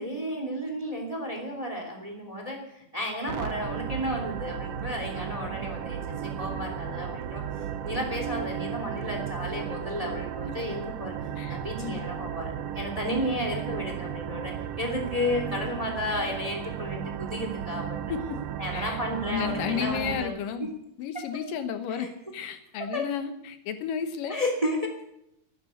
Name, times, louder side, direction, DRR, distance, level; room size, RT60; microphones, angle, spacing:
voice 1, 0.0-7.4 7.8-11.1 11.5-18.1 18.6-20.3 20.6-20.7 21.1-21.4 21.9-22.1 22.8-23.0 24.3-25.2, left 1 dB, 10° right, 3 dB, 2.4 m, -33 dB
sound 1, 3.3-20.2, right 9 dB, 75° right, 1.5 m, -35 dB
voice 2, 11.4-12.1 18.1-18.2 18.7-19.0 19.3-20.7 21.0-22.1 22.3-24.4, left 8 dB, 80° left, 9 dB, 2.7 m, -32 dB
13.0 x 10.0 x 9.4 m, 0.80 s
omnidirectional pair, 3.9 m